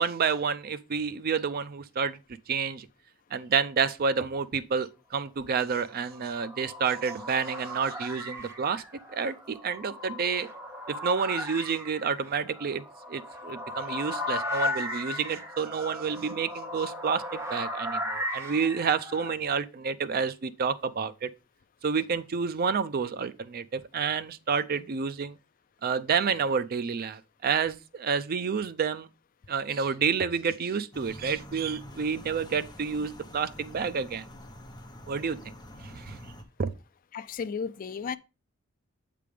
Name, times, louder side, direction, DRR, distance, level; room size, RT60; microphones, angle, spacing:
voice 1, 0.0-2.2 2.5-2.9 3.3-8.8 9.1-10.5 10.9-12.8 13.1-21.3 21.8-25.3 25.8-29.1 29.5-34.3 35.1-35.4 35.8-36.2 36.6-36.7, right 6 dB, 45° right, 0.4 m, -29 dB
sound 1, 5.9-19.3, left 1 dB, 15° right, 1.0 m, -36 dB
sound 2, 30.9-36.4, left 1 dB, 20° left, 0.9 m, -46 dB
voice 2, 37.1-38.2, left 6 dB, 40° left, 0.4 m, -34 dB
7.6 x 3.4 x 4.9 m
head